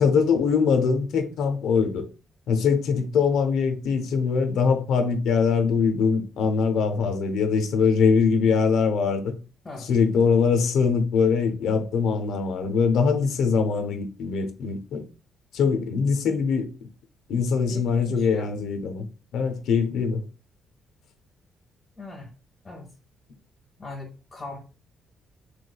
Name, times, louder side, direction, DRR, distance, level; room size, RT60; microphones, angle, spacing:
voice 1, 0.0-2.1 2.5-9.3 9.9-15.1 15.5-16.7 17.3-19.0 19.3-20.2, left 5 dB, 80° left, 0.5 m, -22 dB
voice 2, 17.7-18.5 22.0-22.3 22.6-22.9 23.8-24.6, left 2 dB, 25° left, 0.8 m, -39 dB
3.2 x 3.1 x 2.2 m
cardioid pair, 130°, 0 cm